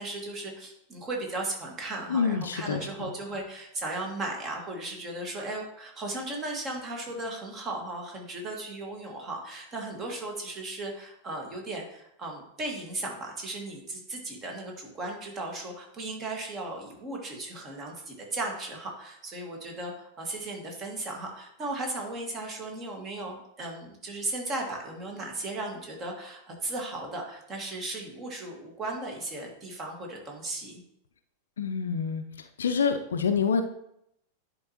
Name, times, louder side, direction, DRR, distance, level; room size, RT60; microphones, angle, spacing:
voice 1, 0.0-30.8, right 2 dB, 25° right, 1 dB, 1.8 m, -36 dB
voice 2, 2.1-2.8 31.6-33.6, left 6 dB, 65° left, 8 dB, 0.5 m, -27 dB
10.5 x 4.4 x 3.0 m, 0.76 s
figure-of-eight pair, 90°, 0 cm